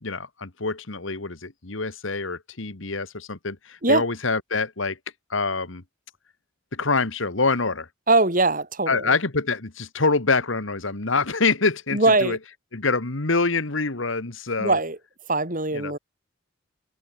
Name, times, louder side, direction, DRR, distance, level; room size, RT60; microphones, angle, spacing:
voice 1, 0.0-5.0 5.3-5.8 6.7-7.9 8.9-12.4 12.7-14.8 15.7-16.0, left 3 dB, 70° left, 1.8 m, -25 dB
voice 2, 8.1-9.2 11.9-12.4 14.6-15.0 15.3-16.0, right 2 dB, 40° right, 5.3 m, -21 dB
open air
head